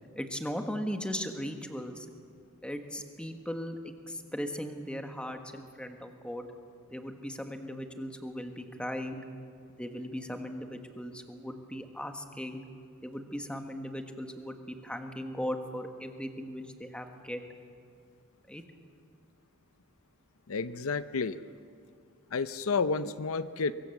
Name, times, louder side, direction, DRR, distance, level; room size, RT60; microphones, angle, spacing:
voice 1, 0.1-2.0 2.6-3.8 4.1-6.5 6.9-9.2 9.8-12.6 13.0-17.4 18.5-18.6, equal, 5° left, 5 dB, 1.5 m, -38 dB
voice 2, 20.5-21.4 22.3-23.7, left 4 dB, 75° left, 13 dB, 0.6 m, -30 dB
24.0 x 23.5 x 7.2 m, 2.3 s
head